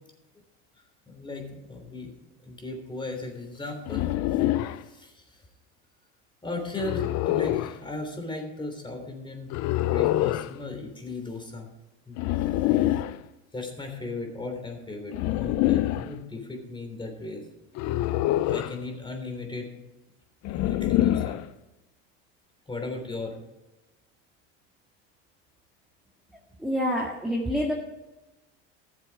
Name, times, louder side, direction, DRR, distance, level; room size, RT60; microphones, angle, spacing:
voice 1, 1.1-2.1 2.4-4.1 4.8-5.4 6.4-11.7 12.1-12.2 12.5-13.0 13.5-17.4 18.5-19.7 20.5-21.4 22.7-23.3, left 2 dB, 15° left, 3 dB, 3.3 m, -36 dB
sound 1, 3.9-4.8 6.8-7.8 9.5-10.5 12.2-13.2 15.1-16.1 17.8-18.8 20.4-21.5, left 14 dB, 55° left, 0.6 m, -25 dB
voice 2, 26.3-27.7, equal, ahead, -4 dB, 1.9 m, -28 dB
14.5 x 7.5 x 4.8 m, 1.0 s
supercardioid pair, 100°, 32 cm